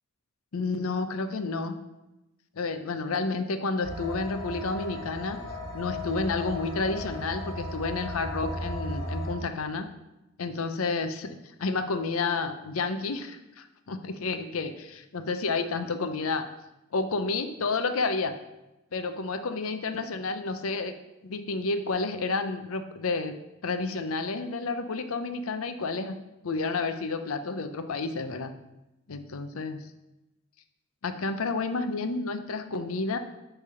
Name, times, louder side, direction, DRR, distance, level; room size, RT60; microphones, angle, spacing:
voice 1, 0.5-1.8 2.6-5.4 5.7-9.9 10.4-14.8 15.1-16.5 16.9-18.3 18.9-20.9 21.2-23.3 23.6-26.2 26.4-28.5 29.1-29.8 31.0-33.2, left 3 dB, 85° left, 9 dB, 0.6 m, -30 dB
sound 1, 3.8-9.3, left 1 dB, 60° left, 1.5 m, -36 dB
8.2 x 3.4 x 5.6 m, 0.96 s
head